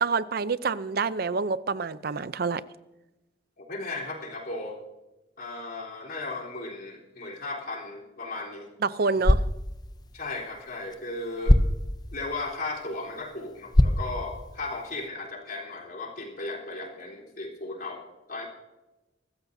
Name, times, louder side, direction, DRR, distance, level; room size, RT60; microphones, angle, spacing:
voice 1, 0.0-2.6 8.8-9.4, right 4 dB, 55° right, 16 dB, 0.6 m, -27 dB
voice 2, 3.6-4.8 5.4-8.7 10.1-11.6 12.1-18.5, left 2 dB, 55° left, -2 dB, 3.8 m, -36 dB
sound 1, 9.1-15.1, left 1 dB, 20° left, 0.7 m, -27 dB
23.5 x 14.0 x 2.7 m, 1.0 s
head